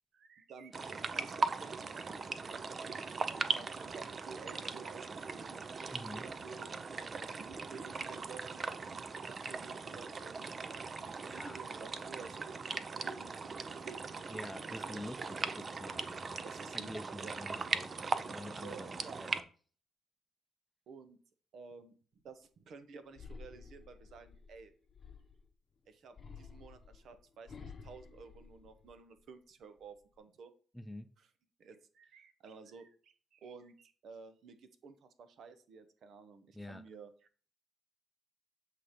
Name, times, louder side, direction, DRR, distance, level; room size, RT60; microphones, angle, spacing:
voice 1, 0.1-5.7 6.2-12.6 12.9-15.5 16.4-16.9 17.2-17.4 18.6-19.2 20.9-21.2 21.5-21.9 22.2-24.7 25.9-30.5 31.2-31.3 31.6-37.1, right 5 dB, 65° right, 10 dB, 0.8 m, -53 dB
sound 1, 0.7-19.4, right 4 dB, 40° right, 0.5 m, -39 dB
voice 2, 5.9-6.3 11.2-11.6 14.3-16.5 16.7-19.5 30.7-31.1 36.5-36.8, left 1 dB, 5° left, 9 dB, 0.6 m, -47 dB
sound 2, 23.1-25.5 26.1-29.2 29.6-30.2, left 5 dB, 35° left, 0.8 m, -52 dB
7.6 x 2.9 x 5.0 m, 0.41 s
cardioid pair, 90°, 0 cm